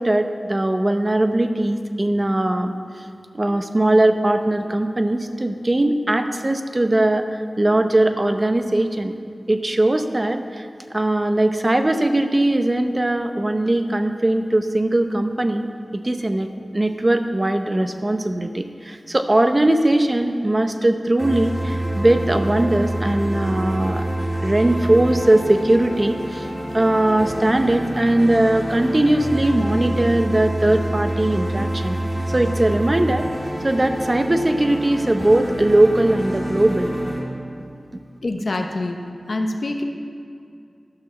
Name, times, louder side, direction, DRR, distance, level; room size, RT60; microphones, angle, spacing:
voice 1, 0.0-2.7 3.3-9.1 9.5-15.7 15.9-16.5 16.7-24.1 24.4-26.5 26.7-32.0 32.3-33.3 33.6-36.9, right 1 dB, 30° right, 7 dB, 0.7 m, -20 dB
sound 1, 21.2-37.2, right 1 dB, 10° right, 2.0 m, -27 dB
voice 2, 38.2-39.0 39.3-39.8, left 2 dB, 60° left, 4 dB, 1.0 m, -25 dB
12.0 x 6.2 x 7.0 m, 2.4 s
wide cardioid pair, 75°, 0 cm